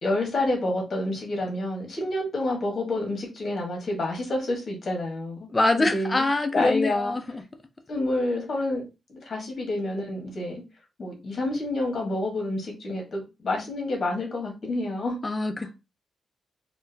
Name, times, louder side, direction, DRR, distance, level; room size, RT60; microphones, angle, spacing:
voice 1, 0.0-5.5 5.8-6.3 6.5-7.1 7.9-8.8 9.1-10.6 11.0-15.2, left 2 dB, 40° left, 1.4 m, -28 dB
voice 2, 5.5-7.4 15.2-15.7, left 2 dB, 15° left, 0.3 m, -24 dB
3.7 x 2.3 x 2.6 m
wide cardioid pair, 175°, 0 cm